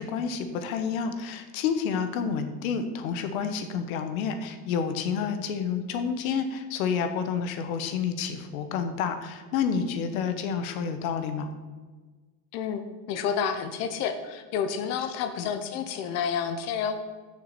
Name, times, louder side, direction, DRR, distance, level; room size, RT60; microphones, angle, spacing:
voice 1, 0.0-11.5 15.1-15.5, left 6 dB, 55° left, 8 dB, 1.2 m, -29 dB
voice 2, 12.5-12.8 13.1-17.0, left 7 dB, 30° left, 8 dB, 0.8 m, -29 dB
6.8 x 6.7 x 6.9 m, 1.4 s
supercardioid pair, 165°, 49 cm